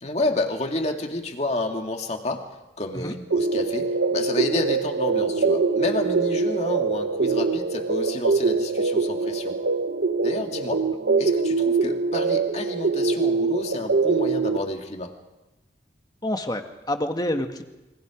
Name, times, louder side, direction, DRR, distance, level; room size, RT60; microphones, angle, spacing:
voice 1, 0.0-2.5 2.8-9.6 10.2-10.8 11.2-15.1, left 2 dB, 40° left, 3 dB, 2.4 m, -30 dB
sound 1, 3.3-14.6, right 4 dB, 70° right, 0.9 m, -23 dB
voice 2, 16.2-17.6, left 1 dB, 25° left, 6 dB, 1.7 m, -27 dB
28.5 x 24.0 x 5.2 m, 1.1 s
head